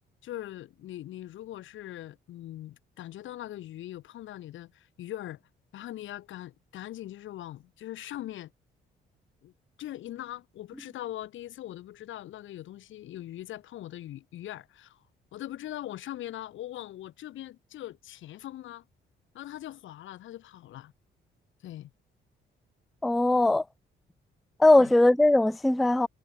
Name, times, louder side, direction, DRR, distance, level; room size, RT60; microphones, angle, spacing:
voice 1, 0.2-5.4 5.7-8.5 9.4-9.5 9.8-15.0 15.3-18.8 19.3-20.9 21.6-21.9 24.8-24.9, left 13 dB, 80° left, 1.6 m, -41 dB
voice 2, 23.0-23.6 24.6-26.1, left 2 dB, ahead, 0.3 m, -20 dB
cardioid pair, 90°, 20 cm